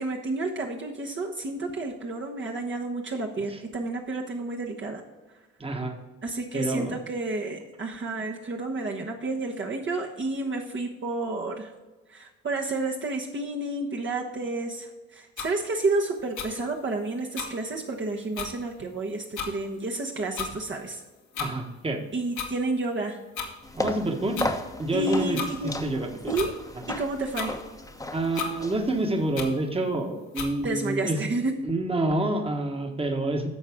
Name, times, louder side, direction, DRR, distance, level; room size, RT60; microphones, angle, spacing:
voice 1, 0.0-5.0 6.2-11.7 12.1-21.0 22.1-23.2 24.9-25.7 26.3-26.5 26.9-27.6 30.6-31.5, right 2 dB, 40° right, 0 dB, 1.1 m, -30 dB
voice 2, 5.6-5.9 6.5-7.0 21.4-22.0 23.7-24.4 24.8-26.3 28.1-31.2 31.6-33.5, right 2 dB, 20° right, 4 dB, 1.3 m, -28 dB
sound 1, 15.4-15.5 16.4-16.5 17.3-17.5 18.0-18.1 18.3-18.5 19.3-19.5 20.3-20.5 21.3-21.5 22.3-22.5 23.3-23.5 24.3-24.5 25.3-25.5 26.3-26.5 27.3-27.5 28.3-28.5 29.3-29.5 30.3-30.5, left 6 dB, 80° left, 1.8 m, -32 dB
sound 2, 23.6-29.3, left 2 dB, 10° left, 1.0 m, -35 dB
10.5 x 6.5 x 3.6 m, 1.2 s
cardioid pair, 90°, 30 cm